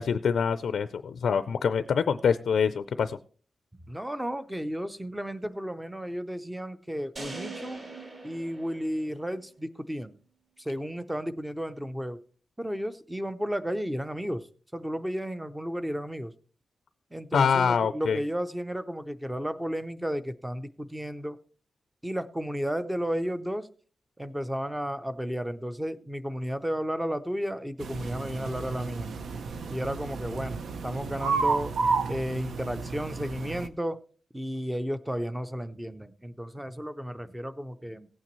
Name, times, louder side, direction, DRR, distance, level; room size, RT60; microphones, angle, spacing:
voice 1, 0.0-3.2 17.3-18.2, left 6 dB, 70° left, 12 dB, 0.4 m, -25 dB
voice 2, 3.9-7.8 8.2-10.1 10.6-12.2 12.6-14.5 14.7-16.3 17.1-21.4 22.0-23.7 24.2-29.1 29.7-31.8 32.1-34.0 34.3-38.1, equal, 5° right, 12 dB, 0.6 m, -33 dB
sound 1, 7.2-9.4, right 3 dB, 35° right, 2.5 m, -42 dB
sound 2, 27.8-33.7, right 4 dB, 70° right, 0.7 m, -31 dB
16.5 x 8.7 x 3.1 m, 0.41 s
wide cardioid pair, 170°, 0 cm